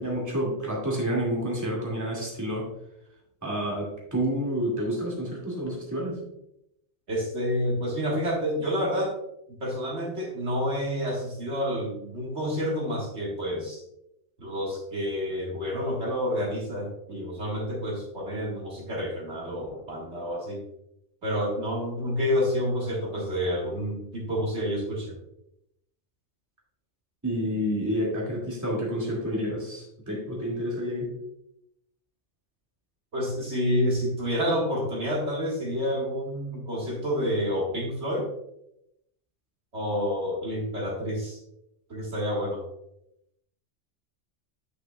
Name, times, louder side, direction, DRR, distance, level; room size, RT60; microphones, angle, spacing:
voice 1, 0.0-2.7 3.4-6.2 27.2-31.1, equal, 15° right, -4 dB, 2.2 m, -29 dB
voice 2, 7.1-9.1 9.6-13.8 14.4-20.6 21.2-25.1 33.1-38.3 39.7-41.4 41.9-42.6, equal, 60° right, -4 dB, 2.1 m, -29 dB
9.5 x 6.2 x 2.3 m, 0.81 s
omnidirectional pair, 1.3 m